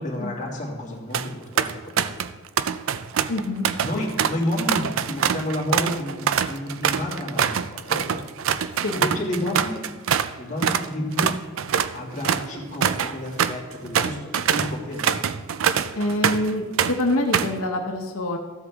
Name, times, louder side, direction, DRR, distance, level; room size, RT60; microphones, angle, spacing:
voice 1, 0.0-2.2 3.8-8.2 8.7-9.8 10.4-11.4 11.9-15.2, left 1 dB, 35° left, -3 dB, 2.1 m, -30 dB
sound 1, 0.9-1.3 1.6-2.3 2.6-10.3 10.6-10.9 11.2-16.5 16.8-17.6, right 8 dB, 70° right, 0.4 m, -24 dB
voice 2, 3.3-3.7 3.9-4.1 8.8-9.0 16.0-18.4, left 1 dB, 90° left, 3 dB, 0.9 m, -25 dB
14.0 x 8.2 x 3.5 m, 1.4 s
head